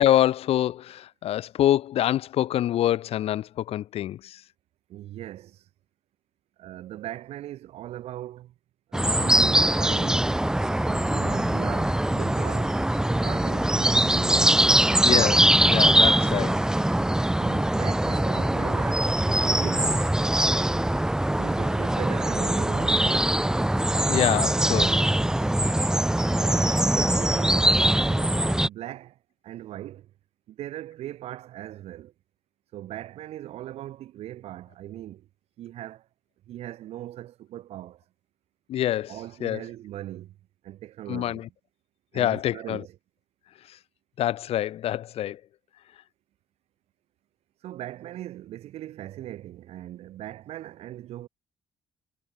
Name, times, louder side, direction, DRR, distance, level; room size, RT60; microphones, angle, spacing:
voice 1, 0.0-4.4 15.0-16.6 24.1-25.0 38.7-39.2 39.4-39.6 41.1-41.5 42.1-42.8 44.2-45.4, left 12 dB, 75° left, 1.0 m, -25 dB
voice 2, 4.9-5.7 6.6-8.5 8.9-10.3 10.8-12.8 13.1-14.6 17.4-20.2 21.4-23.4 26.4-30.1 30.5-32.1 32.7-35.3 35.6-36.1 36.5-38.0 39.1-40.4 40.6-41.5 42.1-43.0 47.6-51.3, right 13 dB, 80° right, 3.7 m, -39 dB
sound 1, 8.9-28.7, right 1 dB, 5° right, 0.8 m, -22 dB
cardioid pair, 85°, 10 cm